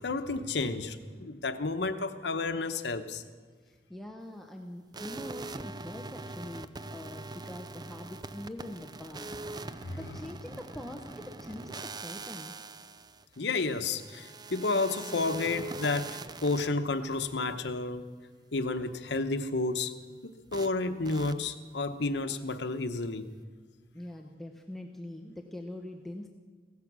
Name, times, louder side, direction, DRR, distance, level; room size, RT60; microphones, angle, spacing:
voice 1, 0.0-3.2 9.8-10.2 13.4-18.1 18.5-19.9 20.2-23.2, left 3 dB, 80° left, 0.9 m, -31 dB
voice 2, 3.6-9.3 10.0-12.6 23.9-26.3, left 1 dB, ahead, 0.8 m, -43 dB
sound 1, 4.9-16.7 20.5-20.7 21.0-21.3, right 3 dB, 25° right, 0.5 m, -42 dB
16.5 x 14.5 x 6.1 m
head